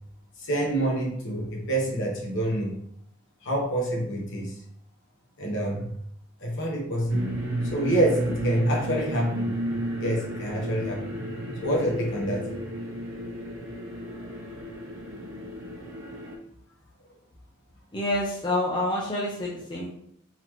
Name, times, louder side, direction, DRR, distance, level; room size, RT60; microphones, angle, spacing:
voice 1, 0.4-2.8 3.4-4.6 5.4-6.0 6.4-7.4 7.7-9.5 10.0-11.1 11.6-12.5 14.6-14.8, right 1 dB, 55° left, -2 dB, 1.1 m, -27 dB
sound 1, 7.1-16.3, equal, 60° right, 0.8 m, -32 dB
voice 2, 17.9-19.9, left 1 dB, 20° left, -6 dB, 0.7 m, -28 dB
4.1 x 2.9 x 3.0 m, 0.68 s
head